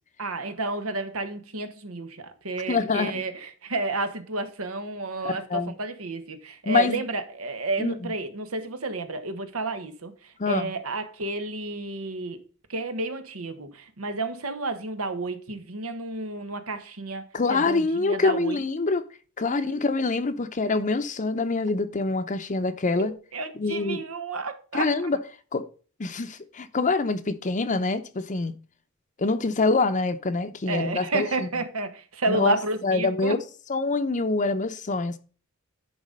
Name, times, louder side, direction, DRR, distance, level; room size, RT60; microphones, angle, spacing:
voice 1, 0.2-12.4 12.7-18.6 19.5-19.8 23.0-24.9 30.7-33.4, right 2 dB, 90° right, 1.3 m, -31 dB
voice 2, 2.7-3.2 5.2-5.7 6.7-7.0 7.8-8.1 10.4-10.7 17.3-19.0 19.4-23.1 23.6-24.0 24.7-25.2 25.5-25.7 26.0-28.5 29.2-31.5 32.3-32.6 32.8-33.4 33.7-35.2, left 3 dB, 35° left, 0.7 m, -25 dB
10.5 x 4.1 x 5.2 m
head